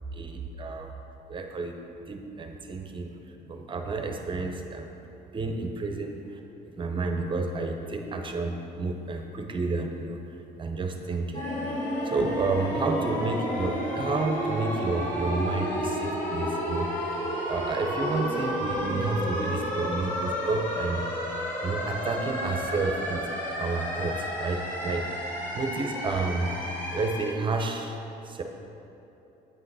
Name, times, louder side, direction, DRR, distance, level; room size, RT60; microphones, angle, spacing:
voice 1, 0.1-0.9 1.3-1.8 2.1-3.1 3.5-4.9 5.3-10.2 10.6-11.5 12.0-17.2 17.5-21.0 21.6-23.3 23.6-25.1 25.5-26.5 26.9-28.0 28.2-28.4, right 3 dB, 30° right, 4 dB, 0.7 m, -30 dB
sound 1, 11.3-27.3, equal, 50° left, 1.7 m, -31 dB
8.8 x 5.6 x 4.0 m, 3.0 s
cardioid pair, 110°, 17 cm